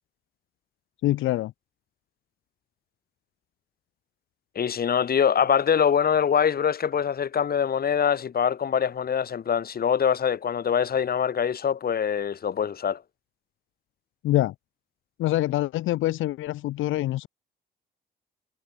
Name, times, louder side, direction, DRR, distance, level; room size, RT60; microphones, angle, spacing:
voice 1, 1.0-1.5 14.2-14.5 15.2-17.3, left 15 dB, 90° left, 2.2 m, -25 dB
voice 2, 4.5-13.0, left 7 dB, 50° left, 3.1 m, -24 dB
cardioid pair, 90°, 20 cm